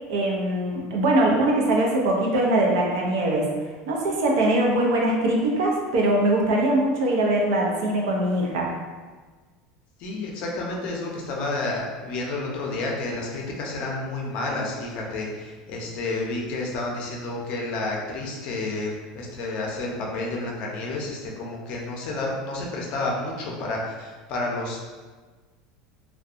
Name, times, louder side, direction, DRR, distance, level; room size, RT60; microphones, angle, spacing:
voice 1, 0.1-3.5 3.9-8.7, right 1 dB, 85° right, -1 dB, 0.6 m, -22 dB
voice 2, 10.0-24.8, left 2 dB, 50° left, -1 dB, 0.5 m, -30 dB
2.6 x 2.2 x 2.4 m, 1.4 s
supercardioid pair, 150°, 2 cm